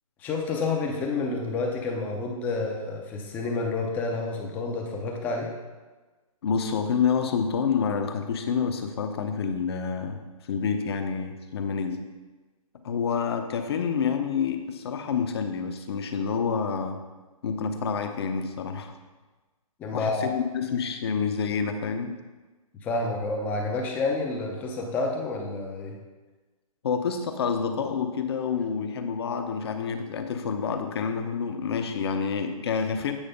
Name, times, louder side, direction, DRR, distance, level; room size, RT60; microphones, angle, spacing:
voice 1, 0.2-5.5 19.8-20.3 22.8-26.0, left 3 dB, 10° left, 1 dB, 0.6 m, -29 dB
voice 2, 6.4-12.0 12.8-17.0 17.4-18.9 19.9-22.2 26.8-33.1, left 6 dB, 45° left, 6 dB, 0.8 m, -28 dB
8.9 x 4.3 x 5.3 m, 1.3 s
hypercardioid pair, 165°, 19 cm